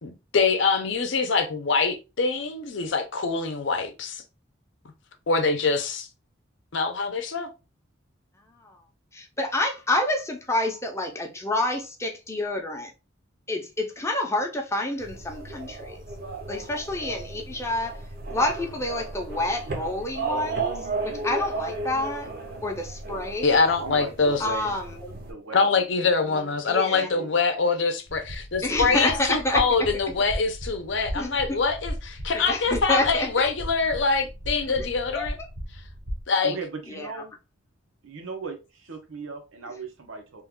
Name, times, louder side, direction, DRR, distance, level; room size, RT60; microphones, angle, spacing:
voice 1, 0.0-4.2 5.3-6.1 6.7-7.5 23.4-24.4 25.5-35.4 36.3-36.6, left 4 dB, 65° left, 0.6 m, -24 dB
voice 2, 9.1-12.9 13.5-16.0 16.5-18.0 18.3-22.3 22.6-23.7 24.4-25.2 26.7-27.1 28.6-29.6 31.1-31.3 32.3-33.3 35.1-35.3 36.9-37.2, left 2 dB, 15° left, 0.6 m, -28 dB
sound 1, 15.0-25.3, right 3 dB, 50° right, 0.7 m, -34 dB
voice 3, 23.8-24.7 25.2-25.9 26.2-26.5 26.9-27.3 36.4-37.4 38.0-40.4, right 4 dB, 85° right, 0.9 m, -37 dB
sound 2, 28.1-36.2, equal, 65° right, 1.1 m, -36 dB
3.1 x 2.3 x 3.5 m
head